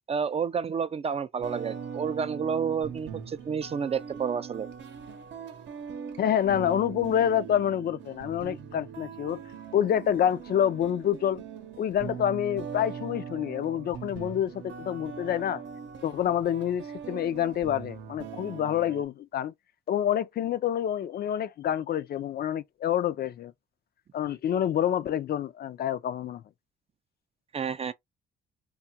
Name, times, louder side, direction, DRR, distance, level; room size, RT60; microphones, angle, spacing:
voice 1, 0.1-4.7 27.5-27.9, right 6 dB, 30° right, 0.4 m, -30 dB
sound 1, 1.4-19.0, right 7 dB, 65° right, 0.7 m, -41 dB
voice 2, 6.2-9.4 9.7-11.4 11.8-15.6 16.0-19.5 19.9-23.5 24.1-26.4, left 10 dB, 55° left, 0.4 m, -27 dB
2.8 x 2.3 x 2.7 m
cardioid pair, 90°, 20 cm